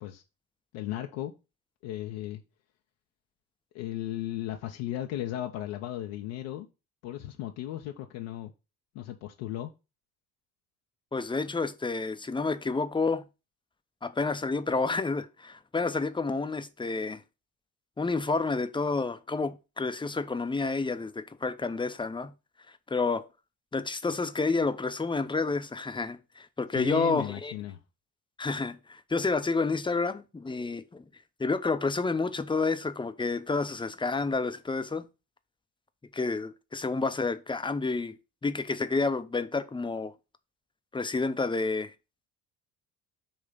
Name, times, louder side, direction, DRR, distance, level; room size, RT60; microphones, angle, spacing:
voice 1, 0.7-1.3 1.8-2.4 3.7-6.7 7.0-8.5 8.9-9.7 26.7-27.8, left 12 dB, 60° left, 0.8 m, -35 dB
voice 2, 11.1-13.2 14.0-17.2 18.0-22.3 22.9-23.3 23.7-27.5 28.4-31.0 31.4-35.1 36.1-38.2 38.4-40.1 40.9-41.9, left 3 dB, 10° left, 0.7 m, -29 dB
8.7 x 3.3 x 5.4 m
figure-of-eight pair, 55°, 49 cm